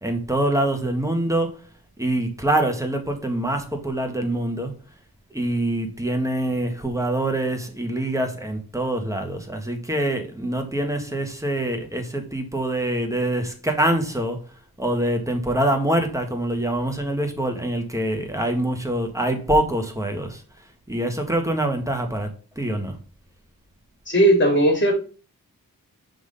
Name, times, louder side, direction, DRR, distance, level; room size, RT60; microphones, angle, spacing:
voice 1, 0.0-1.6 2.0-4.7 5.3-14.4 14.8-20.4 20.9-22.9, right 1 dB, 10° right, 1.6 m, -25 dB
voice 2, 24.1-24.9, right 1 dB, 30° left, 3.0 m, -17 dB
5.8 x 3.9 x 5.5 m
cardioid pair, 60°, 35 cm